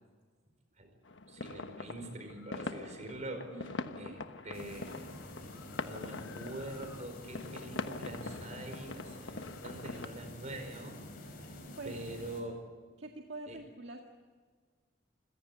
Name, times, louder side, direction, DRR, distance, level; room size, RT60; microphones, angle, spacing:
sound 1, 1.1-10.1, left 3 dB, 85° left, 1.2 m, -43 dB
voice 1, 1.3-3.6 4.0-5.1 5.8-11.0 11.2-11.5 11.8-12.7 13.5-13.6, right 1 dB, 40° right, 6 dB, 4.9 m, -44 dB
voice 2, 3.5-4.2 11.8-12.0 13.0-14.0, right 2 dB, 70° right, 2 dB, 2.0 m, -45 dB
sound 2, 4.5-12.4, left 1 dB, 55° left, 5.4 m, -48 dB
28.5 x 16.5 x 9.4 m, 1.5 s
head